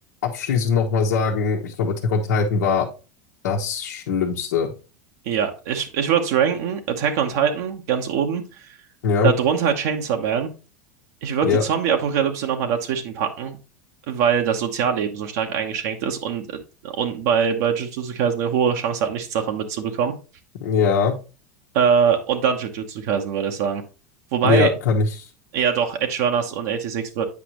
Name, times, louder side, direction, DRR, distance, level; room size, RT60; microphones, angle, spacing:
voice 1, 0.2-2.9 3.4-4.7 9.0-9.3 11.4-11.6 20.6-21.2 24.4-25.3, left 5 dB, 75° left, -1 dB, 1.1 m, -21 dB
voice 2, 5.2-8.8 9.2-10.5 11.2-13.6 14.1-16.6 16.8-20.1 21.7-23.8 24.3-24.7 25.5-27.3, right 7 dB, 70° right, 3 dB, 1.0 m, -23 dB
8.4 x 5.0 x 3.0 m, 0.32 s
hypercardioid pair, 100°, 9 cm